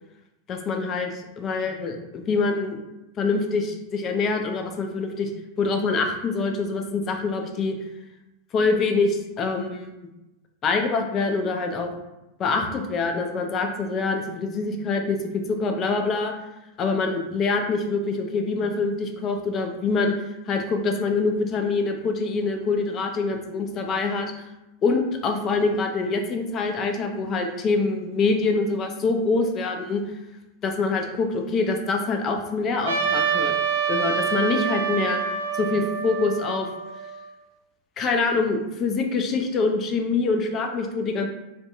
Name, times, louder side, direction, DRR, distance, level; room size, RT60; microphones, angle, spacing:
voice 1, 0.5-2.8 3.2-5.3 5.6-7.7 8.5-9.9 10.6-11.9 12.4-15.2 15.5-16.3 16.8-20.1 20.5-24.3 24.8-30.0 30.6-33.5 33.9-35.2 35.5-36.7 38.0-41.3, left 4 dB, 35° left, 4 dB, 0.4 m, -25 dB
Trumpet, 32.9-37.3, right 7 dB, 75° right, 0.3 m, -26 dB
2.6 x 2.2 x 2.4 m, 0.96 s
hypercardioid pair, 90°, 0 cm